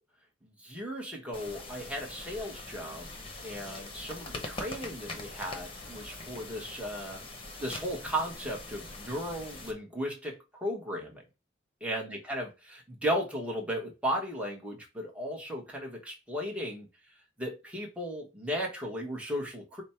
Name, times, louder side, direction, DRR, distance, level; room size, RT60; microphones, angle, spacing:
voice 1, 0.4-3.1 3.4-7.2 7.6-11.2 11.8-16.9 17.4-19.8, equal, 5° right, 1.1 m, -35 dB
sound 1, 1.3-9.7, left 2 dB, 25° left, 0.9 m, -43 dB
5.2 x 2.1 x 4.3 m
head